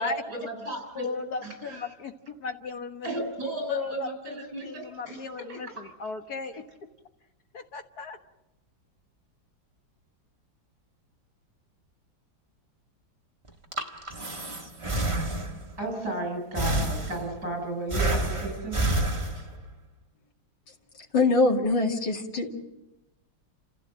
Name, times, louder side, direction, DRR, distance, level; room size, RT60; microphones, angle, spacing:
voice 1, 0.0-1.9 3.0-5.8 15.8-19.0 19.3-19.6, right 2 dB, 55° right, 4 dB, 7.0 m, -34 dB
voice 2, 1.0-3.1 3.7-6.6 7.5-8.2, left 4 dB, 55° left, 6 dB, 1.8 m, -36 dB
Breathing, 13.5-15.8 16.6-17.5 17.9-19.7, right 1 dB, 20° right, 1.4 m, -29 dB
voice 3, 21.1-22.6, left 3 dB, 85° left, -1 dB, 3.2 m, -23 dB
29.5 x 15.5 x 7.6 m, 0.96 s
omnidirectional pair, 2.0 m